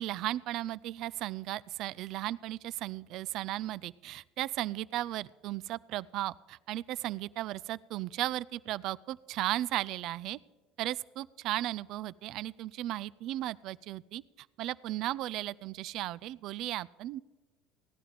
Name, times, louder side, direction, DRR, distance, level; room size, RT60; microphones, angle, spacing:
voice 1, 0.0-10.4 10.8-14.2 14.6-17.2, right 15 dB, 60° right, 19 dB, 0.3 m, -35 dB
17.0 x 11.0 x 5.0 m, 1.2 s
hypercardioid pair, 80°, 0 cm